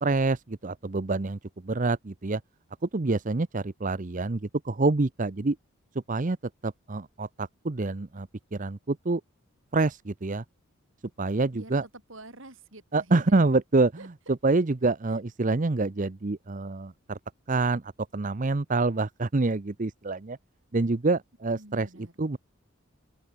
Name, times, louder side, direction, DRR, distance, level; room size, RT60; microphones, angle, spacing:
voice 1, 0.0-2.4 2.8-5.6 5.9-6.4 6.6-9.2 9.7-10.4 11.2-11.9 12.9-17.2 17.5-20.4 20.7-22.4, right 3 dB, 35° right, 0.7 m, -27 dB
voice 2, 11.5-13.3 14.0-14.1 21.5-22.1, right 2 dB, 65° right, 6.0 m, -47 dB
open air
head